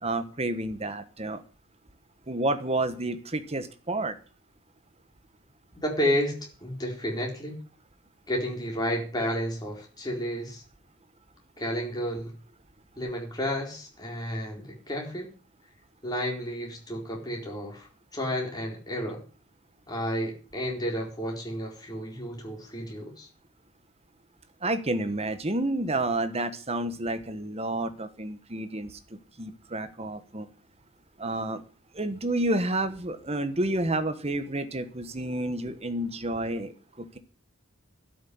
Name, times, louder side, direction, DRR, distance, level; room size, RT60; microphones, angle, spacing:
voice 1, 0.0-1.4 2.3-4.2 24.6-30.5 31.2-31.6 31.9-36.7 37.0-37.2, right 1 dB, 30° right, 11 dB, 1.3 m, -30 dB
voice 2, 5.8-6.3 6.6-7.6 8.3-10.6 11.6-12.3 13.0-15.3 16.0-19.2 19.9-23.3, equal, 20° left, -1 dB, 4.2 m, -31 dB
12.0 x 6.5 x 9.5 m, 0.39 s
head